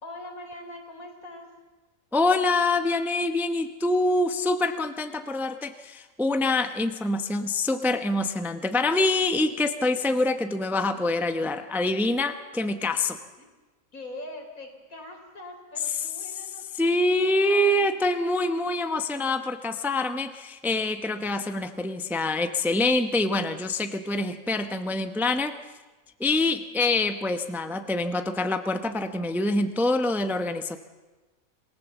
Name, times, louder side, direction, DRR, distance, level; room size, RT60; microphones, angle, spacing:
voice 1, 0.0-1.5 13.4-13.5 13.9-17.9, left 1 dB, 80° left, 3 dB, 4.2 m, -42 dB
voice 2, 2.1-13.2 16.8-25.6 26.2-30.8, left 2 dB, ahead, 8 dB, 0.7 m, -25 dB
27.0 x 18.5 x 7.2 m, 1.2 s
omnidirectional pair, 1.4 m